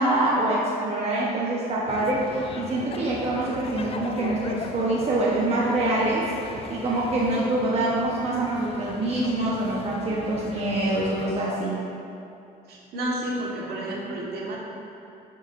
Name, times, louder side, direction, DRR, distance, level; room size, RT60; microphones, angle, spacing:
voice 1, 0.0-6.3 6.7-11.9, right 2 dB, 40° right, -5 dB, 1.1 m, -25 dB
sound 1, 1.9-11.5, left 5 dB, 35° left, 0.4 m, -39 dB
voice 2, 12.7-14.6, right 1 dB, 70° right, -4 dB, 1.7 m, -31 dB
10.5 x 6.2 x 2.6 m, 2.7 s
cardioid pair, 110°, 17 cm